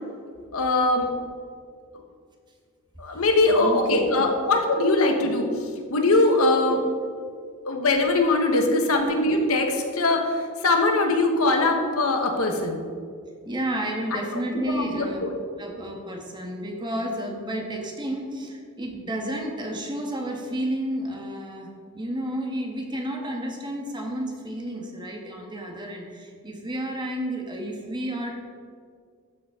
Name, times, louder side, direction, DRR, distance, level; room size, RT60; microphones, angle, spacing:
voice 1, 0.5-1.1 3.0-6.8 7.7-12.8 14.1-14.2 14.7-15.3, left 2 dB, 75° left, 3 dB, 1.3 m, -22 dB
voice 2, 3.4-4.0 8.6-8.7 13.4-15.2 15.6-28.3, right 1 dB, 20° right, 1 dB, 1.3 m, -31 dB
12.5 x 8.0 x 3.7 m, 2.1 s
head